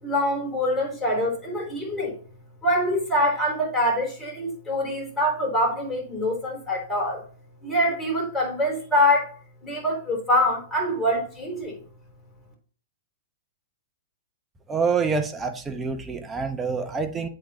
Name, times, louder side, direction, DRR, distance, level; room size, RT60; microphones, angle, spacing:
voice 1, 0.0-2.2 2.6-7.2 7.6-9.3 9.6-11.8, left 1 dB, 10° left, 3.8 m, -24 dB
voice 2, 14.7-17.3, right 5 dB, 15° right, 1.1 m, -26 dB
8.3 x 3.9 x 4.1 m
hypercardioid pair, 120°, 0 cm